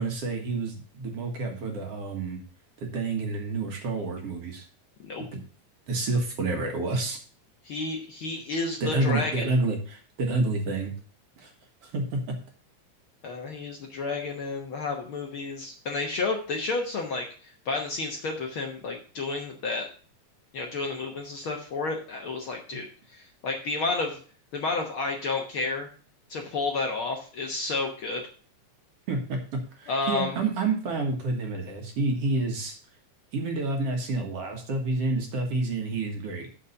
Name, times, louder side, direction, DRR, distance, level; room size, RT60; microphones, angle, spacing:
voice 1, 0.0-2.4 2.8-4.6 5.3-5.4 5.9-7.2 8.8-10.9 11.4-11.5 11.8-12.2 22.7-22.8 29.1-29.4 29.8-32.7 33.3-36.5, right 3 dB, 55° right, 3 dB, 2.4 m, -29 dB
voice 2, 7.6-9.5 13.2-19.9 20.5-24.2 24.5-25.9 26.3-28.2 29.9-30.4, left 3 dB, 55° left, 2 dB, 1.6 m, -31 dB
7.1 x 6.5 x 6.6 m, 0.40 s
omnidirectional pair, 3.4 m